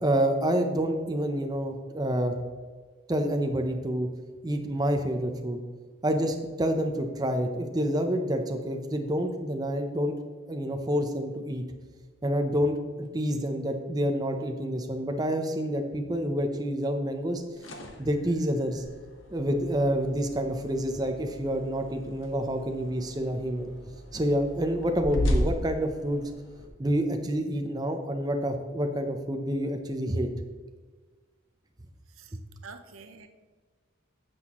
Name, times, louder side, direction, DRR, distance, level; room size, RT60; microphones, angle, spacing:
voice 1, 0.0-2.4 3.1-4.1 4.4-5.6 6.0-10.1 10.5-11.6 12.2-17.4 18.0-18.8 19.3-23.7 24.1-26.2 26.8-30.3, equal, 20° right, 5 dB, 0.6 m, -28 dB
sound 1, 17.3-26.7, equal, 65° left, 1.2 m, -36 dB
voice 2, 32.1-33.3, right 4 dB, 80° right, 7 dB, 0.8 m, -48 dB
9.8 x 7.8 x 3.0 m, 1.5 s
head